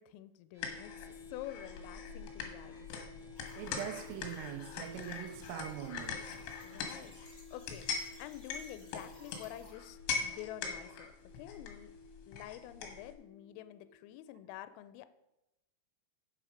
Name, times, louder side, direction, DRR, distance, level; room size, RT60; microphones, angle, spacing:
voice 1, 0.0-2.9 6.6-7.2 7.5-7.9 8.2-12.0 12.3-15.1, left 13 dB, 90° left, 3.2 m, -48 dB
sound 1, 0.5-14.5, left 5 dB, 50° right, 2.9 m, -55 dB
sound 2, 0.6-13.1, left 5 dB, 70° left, 3.5 m, -42 dB
sound 3, 3.4-9.7, left 1 dB, 25° left, 1.3 m, -61 dB
voice 2, 3.6-6.2, right 10 dB, 90° right, 3.4 m, -42 dB
10.0 x 7.7 x 5.0 m
omnidirectional pair, 5.7 m